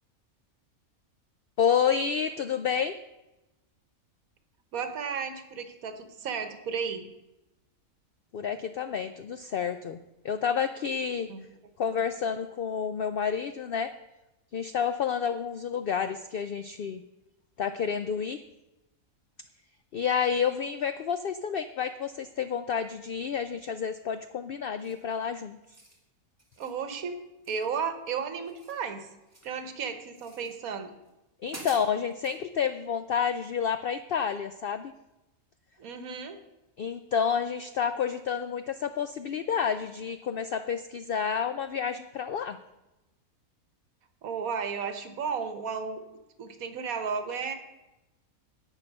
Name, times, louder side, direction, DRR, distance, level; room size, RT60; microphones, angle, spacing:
voice 1, 1.6-3.0 8.3-10.0 10.2-11.3 11.8-13.9 14.5-17.0 17.6-18.4 19.9-25.6 31.4-34.9 36.8-42.6, left 7 dB, 90° left, 10 dB, 0.5 m, -29 dB
voice 2, 4.7-7.0 11.3-11.4 26.6-27.2 27.5-29.1 29.4-30.9 35.8-36.4 44.2-46.0 46.4-47.5, right 6 dB, 75° right, 9 dB, 1.5 m, -33 dB
sound 1, 24.8-25.1 25.6-26.0 26.4-26.8 27.4-28.1 28.4-29.6 30.1-30.5 31.1-31.2 31.4-32.4, right 2 dB, 10° right, 1.7 m, -48 dB
11.0 x 8.3 x 5.4 m, 0.97 s
omnidirectional pair, 1.5 m